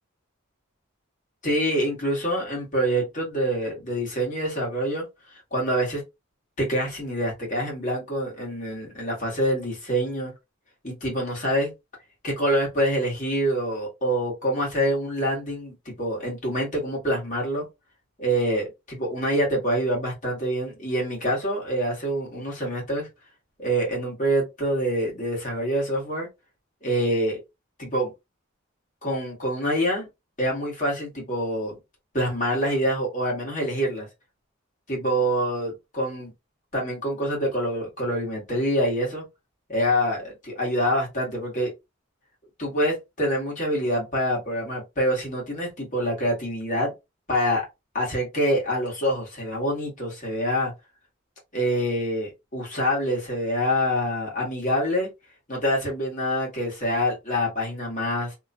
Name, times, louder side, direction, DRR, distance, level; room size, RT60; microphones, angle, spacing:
voice 1, 1.4-6.0 6.6-10.3 10.8-11.7 12.2-17.6 18.2-23.1 23.6-26.3 26.8-27.4 27.8-28.1 29.0-30.1 30.4-31.7 32.1-34.1 34.9-36.3 36.7-39.2 39.7-41.7 42.6-46.9 47.3-47.6 47.9-50.7 51.5-55.1 55.5-58.3, equal, 35° left, 1.5 m, -26 dB
2.9 x 2.3 x 2.7 m
head